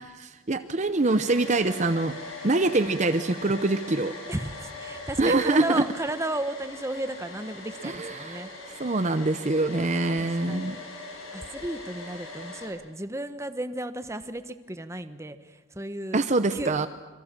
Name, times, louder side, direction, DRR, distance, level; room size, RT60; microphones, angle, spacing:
voice 1, 0.1-2.2 2.4-4.1 5.2-5.8 7.8-8.5 8.8-10.8 16.1-16.9, right 2 dB, 35° right, 10 dB, 0.8 m, -24 dB
Domestic sounds home sounds, 0.9-12.7, left 2 dB, 90° left, 7.7 m, -41 dB
voice 2, 4.3-8.5 10.2-10.9 11.3-16.2 16.5-16.9, right 1 dB, 15° right, 10 dB, 1.1 m, -34 dB
27.0 x 23.5 x 7.5 m, 1.2 s
head